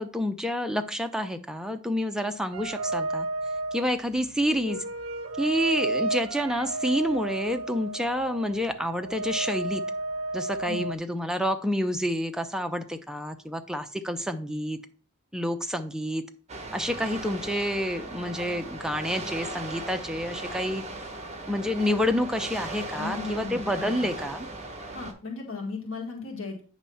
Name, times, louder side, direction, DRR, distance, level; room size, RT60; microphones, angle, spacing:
voice 1, 0.0-3.3 3.7-4.8 5.4-9.8 10.3-14.8 15.3-16.2 16.7-20.8 21.5-24.5, equal, 5° right, 7 dB, 0.5 m, -28 dB
sound 1, 2.5-10.9, right 2 dB, 80° right, 0.5 m, -32 dB
sound 2, 16.5-25.1, right 2 dB, 35° right, 1.0 m, -38 dB
voice 2, 23.0-24.1 24.9-26.6, left 4 dB, 70° left, 0 dB, 1.6 m, -36 dB
8.5 x 3.1 x 5.6 m, 0.39 s
head